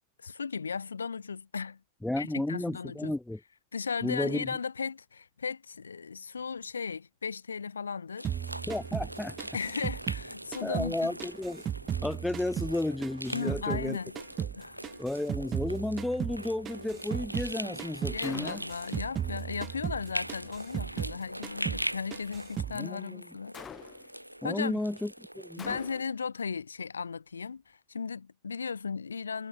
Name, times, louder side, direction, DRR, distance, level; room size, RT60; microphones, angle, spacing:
voice 1, 0.2-1.8 2.2-3.1 3.7-8.3 9.5-11.1 13.3-14.1 14.5-14.8 18.1-23.6 24.4-24.8 25.6-29.5, left 5 dB, 75° left, 1.2 m, -36 dB
voice 2, 2.0-3.4 4.0-4.6 8.7-9.4 10.6-11.6 12.0-14.0 14.4-14.5 15.0-18.6 22.7-23.2 24.4-25.8, left 1 dB, 5° left, 0.4 m, -33 dB
sound 1, 8.2-10.9 11.2-13.9 14.2-17.5 17.8-18.2 18.5-21.2 21.4-21.9 22.1-22.8, right 9 dB, 25° right, 1.7 m, -36 dB
sound 2, 8.2-26.0, right 1 dB, 90° right, 1.6 m, -42 dB
Gunshot gunfire, 18.2-18.9 23.5-24.2 25.6-26.3, left 7 dB, 20° left, 2.4 m, -46 dB
figure-of-eight pair, 90°, 0 cm